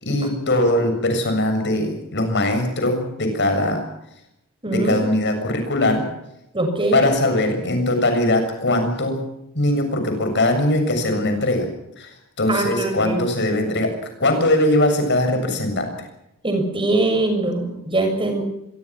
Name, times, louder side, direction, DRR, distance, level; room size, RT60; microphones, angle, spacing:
voice 1, 0.0-3.8 4.7-6.1 6.9-9.2 9.5-11.7 12.0-15.9, left 1 dB, 55° left, 7 dB, 7.2 m, -21 dB
voice 2, 4.6-5.0 6.5-7.0 12.5-13.2 16.4-18.4, right 2 dB, 25° right, 5 dB, 6.9 m, -22 dB
26.0 x 23.0 x 6.0 m, 0.84 s
head